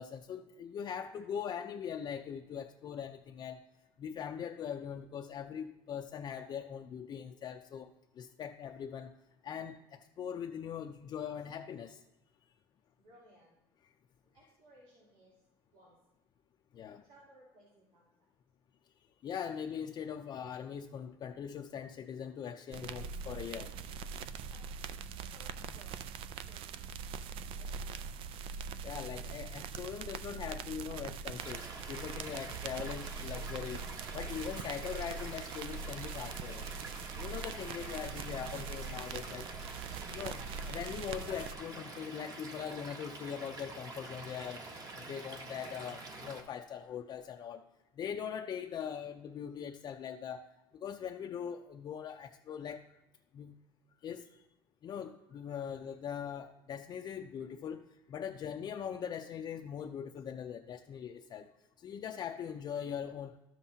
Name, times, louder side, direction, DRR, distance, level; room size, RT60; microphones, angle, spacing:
voice 1, 0.0-3.6 4.0-7.9 8.2-9.1 9.4-12.0 16.7-17.0 19.2-23.7 28.8-33.8 34.1-36.7 37.2-39.5 40.1-40.4 40.7-44.6 44.9-47.6 48.0-50.5 50.8-52.8 53.3-53.5 54.0-54.3 54.8-57.8 58.1-61.5 61.8-63.4, left 8 dB, 40° left, 3 dB, 0.5 m, -41 dB
voice 2, 13.0-13.6 14.2-16.0 17.0-18.3 24.3-26.0 26.5-26.9 27.5-28.1, right 1 dB, 85° right, -6 dB, 3.1 m, -62 dB
sound 1, 22.7-41.5, right 6 dB, 55° right, 0.4 m, -42 dB
Stream / Liquid, 31.4-46.4, right 2 dB, 35° right, 1.3 m, -47 dB
12.5 x 7.3 x 2.8 m, 0.94 s
cardioid pair, 120°, 11 cm